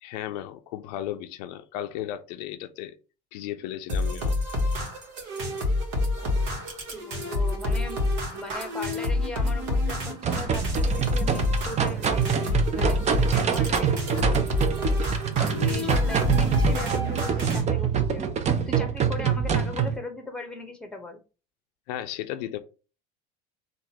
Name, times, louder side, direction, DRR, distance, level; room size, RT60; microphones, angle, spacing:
voice 1, 0.0-3.0 3.3-4.4 15.5-16.0 17.3-17.6 19.2-19.3 21.9-22.6, left 12 dB, 75° left, 0.5 m, -35 dB
sound 1, 3.9-17.6, left 2 dB, 70° right, 1.3 m, -28 dB
voice 2, 6.2-8.0 8.3-12.3 12.7-15.3 15.6-18.4 18.7-21.2, left 2 dB, 5° left, 1.0 m, -38 dB
sound 2, 10.2-20.0, right 7 dB, 35° right, 0.6 m, -25 dB
3.8 x 2.5 x 2.8 m
hypercardioid pair, 90°, 20 cm